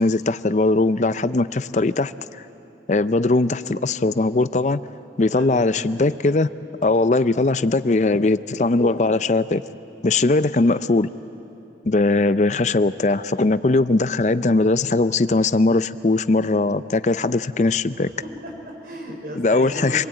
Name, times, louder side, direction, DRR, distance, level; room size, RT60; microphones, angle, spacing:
voice 1, 0.0-2.1 2.9-4.8 5.2-6.5 6.8-9.6 10.0-11.1 11.9-18.1 19.4-20.0, left 2 dB, 40° left, 14 dB, 0.5 m, -20 dB
voice 2, 5.2-5.9 18.0-20.1, equal, 55° right, 1 dB, 5.0 m, -35 dB
26.0 x 20.5 x 8.9 m, 2.9 s
head